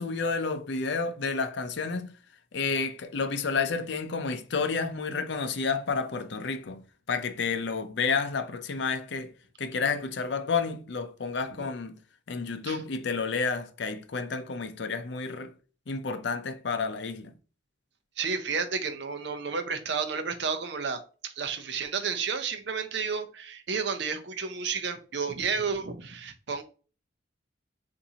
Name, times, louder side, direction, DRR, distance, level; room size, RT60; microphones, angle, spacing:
voice 1, 0.0-2.1 2.5-11.9 12.3-15.5 15.9-17.3, left 4 dB, 60° left, 0.5 m, -30 dB
voice 2, 18.2-26.6, right 5 dB, 60° right, 0.6 m, -31 dB
6.9 x 2.6 x 2.8 m
head